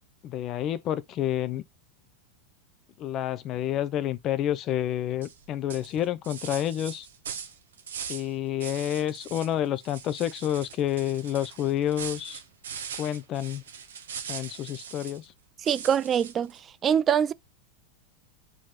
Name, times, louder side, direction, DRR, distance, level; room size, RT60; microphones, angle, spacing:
voice 1, 0.2-1.6 3.0-7.1 8.1-12.4 13.0-13.6 14.3-15.3, left 11 dB, 40° left, 0.6 m, -29 dB
sound 1, 5.2-5.4 5.7-8.3 8.6-9.5 9.8-15.2 15.7-16.6, right 7 dB, 85° right, 1.1 m, -40 dB
voice 2, 15.7-16.5 16.8-17.3, right 8 dB, 30° right, 0.4 m, -23 dB
4.6 x 2.9 x 3.8 m
hypercardioid pair, 110°, 0 cm